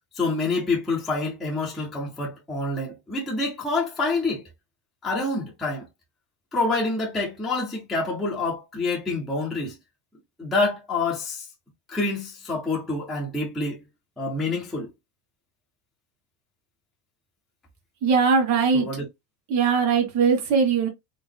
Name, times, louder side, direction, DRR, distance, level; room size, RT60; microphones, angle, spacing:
voice 1, 0.1-4.4 5.0-5.9 6.5-9.8 10.4-11.5 11.9-13.8 14.2-14.9 18.7-19.1, left 3 dB, ahead, 0.4 m, -27 dB
voice 2, 18.0-18.9 19.5-20.9, right 5 dB, 35° right, 1.5 m, -20 dB
3.7 x 2.1 x 3.2 m
supercardioid pair, 155°, 47 cm